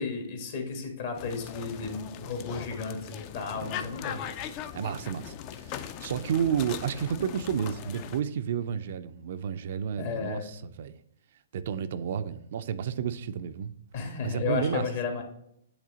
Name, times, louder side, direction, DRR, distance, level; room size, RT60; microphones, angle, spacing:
voice 1, 0.0-4.3 10.0-10.5 13.9-15.2, left 5 dB, 55° left, 1.4 m, -33 dB
sound 1, 1.1-8.2, left 10 dB, 35° left, 0.4 m, -40 dB
voice 2, 3.6-4.0 4.7-10.9 11.5-13.7 14.2-14.9, right 8 dB, 60° right, 0.4 m, -31 dB
8.0 x 3.3 x 3.9 m
hypercardioid pair, 130°, 0 cm